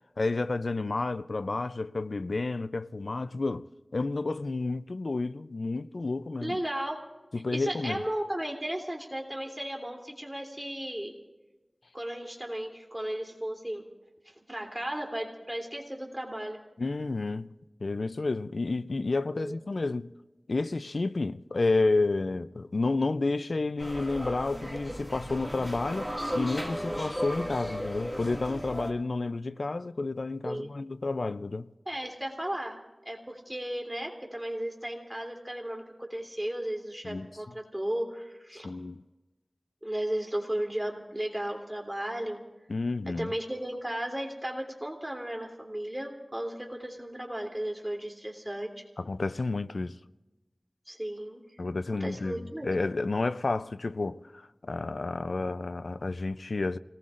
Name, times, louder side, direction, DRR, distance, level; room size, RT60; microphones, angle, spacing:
voice 1, 0.2-6.6 7.3-8.0 16.8-17.5 17.8-20.1 20.5-31.7 37.0-37.5 38.5-39.0 42.7-43.3 49.0-50.0 51.6-56.8, left 3 dB, 85° left, 0.4 m, -30 dB
voice 2, 6.4-7.0 7.5-11.1 11.9-13.8 14.5-16.6 19.4-19.5 30.4-30.7 31.9-32.8 33.0-38.7 39.8-42.4 43.2-48.8 50.9-51.4 52.0-52.7, right 1 dB, 20° right, 3.0 m, -35 dB
sound 1, 23.8-28.9, equal, ahead, 2.1 m, -35 dB
29.5 x 19.0 x 2.5 m
wide cardioid pair, 55°, 0 cm